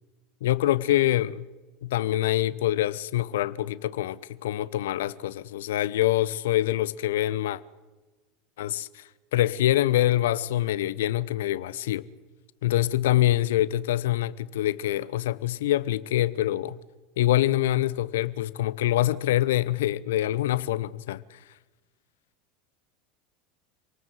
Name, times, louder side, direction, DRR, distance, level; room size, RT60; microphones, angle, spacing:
voice 1, 0.4-1.5 1.8-7.6 8.6-12.1 12.6-16.8 17.2-21.4, left 14 dB, 70° left, 0.9 m, -25 dB
27.5 x 19.0 x 8.0 m
figure-of-eight pair, 80°, 0 cm